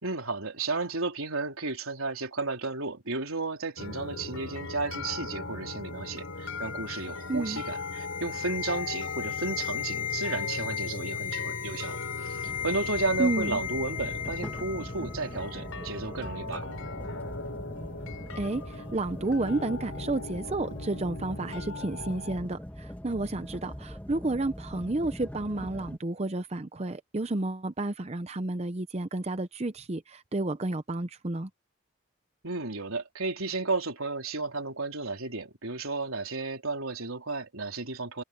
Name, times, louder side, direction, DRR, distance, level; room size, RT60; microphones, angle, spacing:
voice 1, 0.0-16.8 32.4-38.2, right 3 dB, 85° right, 3.8 m, -33 dB
sound 1, 3.8-22.4, left 2 dB, 80° left, 5.0 m, -39 dB
sound 2, 5.9-15.2 15.4-15.6, left 9 dB, 40° left, 1.5 m, -36 dB
voice 2, 7.3-7.6 13.2-13.6 18.4-31.5, right 2 dB, 30° right, 0.7 m, -31 dB
sound 3, 12.4-26.0, equal, 10° left, 1.6 m, -42 dB
head